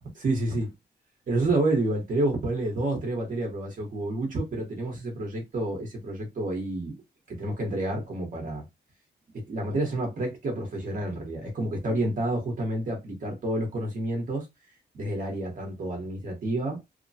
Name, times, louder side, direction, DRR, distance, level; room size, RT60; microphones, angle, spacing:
voice 1, 0.2-0.7 1.3-7.0 7.3-8.6 9.3-14.5 14.9-16.8, right 2 dB, 50° right, 1.1 m, -29 dB
2.9 x 2.2 x 2.7 m
wide cardioid pair, 155°, 17 cm